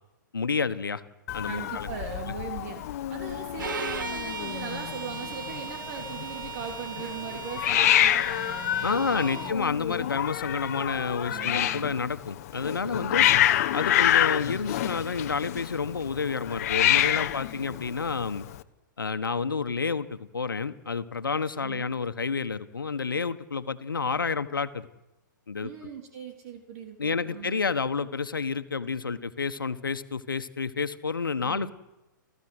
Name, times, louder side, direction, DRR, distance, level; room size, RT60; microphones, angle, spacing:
voice 1, 0.3-1.0 1.3-1.9 8.8-13.3 13.7-18.5 19.0-24.9 25.5-25.7 27.0-31.7, left 5 dB, 80° left, 12 dB, 1.4 m, -30 dB
Hiss, 1.3-18.6, left 12 dB, 45° left, 1.1 m, -27 dB
voice 2, 1.5-2.8 3.1-9.5 11.3-11.9 12.9-13.3 13.9-14.0 17.1-17.3 17.6-17.8 21.6-21.9 25.6-27.6 31.4-31.7, right 6 dB, 45° right, 3 dB, 3.6 m, -40 dB
Bowed string instrument, 3.6-9.6, right 5 dB, 70° right, 2.1 m, -37 dB
29.5 x 14.0 x 8.0 m, 1.0 s
figure-of-eight pair, 120°, 11 cm